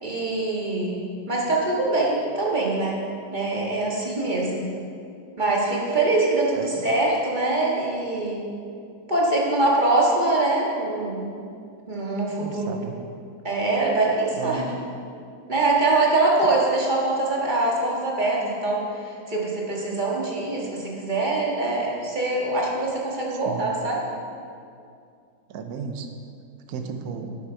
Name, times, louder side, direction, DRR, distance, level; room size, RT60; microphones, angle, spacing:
voice 1, 0.0-3.0 3.3-4.7 5.4-8.4 9.1-11.3 11.9-12.7 13.4-14.7 15.5-24.0, right 2 dB, 30° right, -3 dB, 1.7 m, -23 dB
voice 2, 12.4-13.0 14.3-14.7 23.4-23.7 25.5-26.1 26.7-27.4, right 6 dB, 75° right, 5 dB, 1.2 m, -33 dB
10.0 x 8.4 x 4.5 m, 2.4 s
omnidirectional pair, 1.7 m